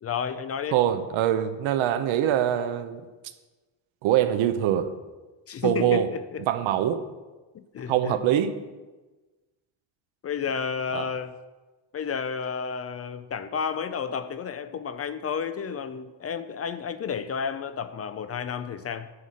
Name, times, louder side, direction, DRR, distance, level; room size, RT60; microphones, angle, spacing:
voice 1, 0.0-0.8 5.5-6.4 7.5-8.2 10.2-11.4 11.9-19.1, left 6 dB, 35° left, 12 dB, 0.4 m, -31 dB
voice 2, 0.7-3.0 4.0-4.9 5.6-6.1 6.5-7.1 7.9-8.5 10.9-11.1, right 11 dB, 85° right, 10 dB, 0.8 m, -23 dB
9.6 x 4.2 x 7.4 m, 1.2 s
cardioid pair, 110°, 46 cm